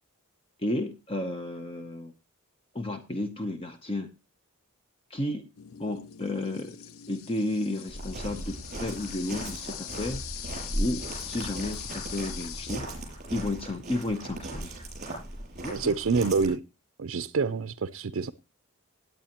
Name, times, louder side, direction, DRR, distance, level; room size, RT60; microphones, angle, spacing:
voice 1, 0.6-2.1 2.7-4.1 5.1-5.5 5.8-6.8 7.1-10.2 10.7-12.9 13.3-14.7 15.6-15.9, left 1 dB, 25° left, 7 dB, 0.7 m, -32 dB
sound 1, 5.6-12.8, left 11 dB, 70° left, 0.5 m, -42 dB
Walk footsteps, 7.9-16.5, right 1 dB, 35° right, 6.8 m, -37 dB
voice 2, 15.7-16.6 17.0-18.3, right 4 dB, 65° right, 10 dB, 0.5 m, -27 dB
17.5 x 9.3 x 2.9 m, 0.27 s
head